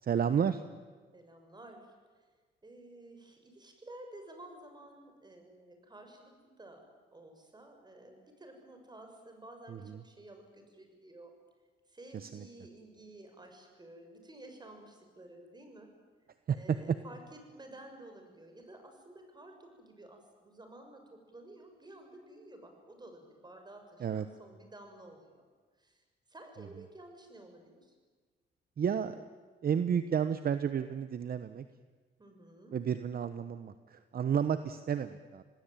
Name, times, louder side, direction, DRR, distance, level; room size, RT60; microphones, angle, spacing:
voice 1, 0.0-0.6 9.7-9.8 12.1-12.4 16.5-16.8 24.0-24.2 28.8-29.3 29.6-31.6 32.7-35.4, right 8 dB, 50° right, 12 dB, 1.0 m, -31 dB
voice 2, 1.1-1.9 2.6-11.3 11.9-15.9 16.5-25.4 25.8-26.0 26.3-27.9 32.2-32.8, right 1 dB, 20° right, 5 dB, 6.7 m, -52 dB
27.0 x 19.0 x 9.1 m, 1.5 s
cardioid pair, 90°, 20 cm